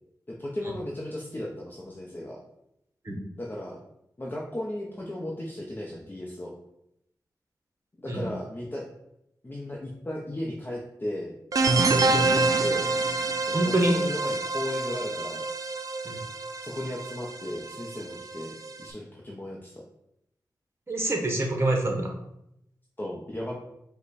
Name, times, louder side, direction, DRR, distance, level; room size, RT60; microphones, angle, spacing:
voice 1, 0.3-2.4 3.4-3.8 4.2-6.5 8.0-8.8 9.4-12.9 13.4-15.4 16.6-19.8 23.0-23.6, left 1 dB, 25° left, -3 dB, 0.7 m, -36 dB
sound 1, 11.5-18.8, right 3 dB, 50° right, 0.4 m, -27 dB
voice 2, 13.5-13.9 16.0-16.2 20.9-22.1, right 1 dB, 35° right, 2 dB, 1.1 m, -25 dB
5.1 x 2.2 x 4.1 m, 0.80 s
wide cardioid pair, 70°, 8 cm